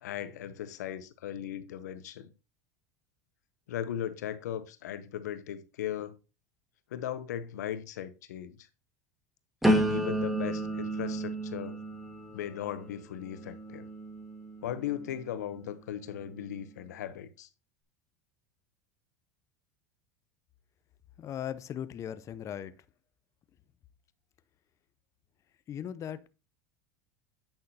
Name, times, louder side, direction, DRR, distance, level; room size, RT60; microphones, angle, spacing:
voice 1, 0.0-2.3 3.7-6.2 6.9-8.6 9.9-11.8 12.3-13.9 14.6-17.5, left 10 dB, 85° left, 0.7 m, -37 dB
sound 1, 9.6-15.5 16.0-16.4, right 1 dB, ahead, 1.5 m, -32 dB
voice 2, 21.2-22.7 25.7-26.3, left 9 dB, 35° left, 0.5 m, -38 dB
8.8 x 5.7 x 2.7 m
supercardioid pair, 105°, 9 cm